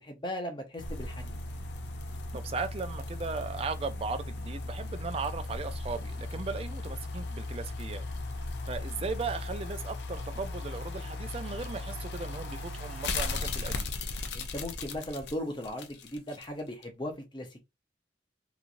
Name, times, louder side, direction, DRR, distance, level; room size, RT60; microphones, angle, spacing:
voice 1, 0.0-1.4 14.3-17.6, left 1 dB, 25° left, 0.7 m, -38 dB
sound 1, 0.8-16.5 16.8-16.9, left 2 dB, 65° left, 0.5 m, -37 dB
voice 2, 2.3-8.0 8.7-13.9, right 4 dB, 30° right, 0.3 m, -37 dB
3.0 x 2.5 x 2.5 m
head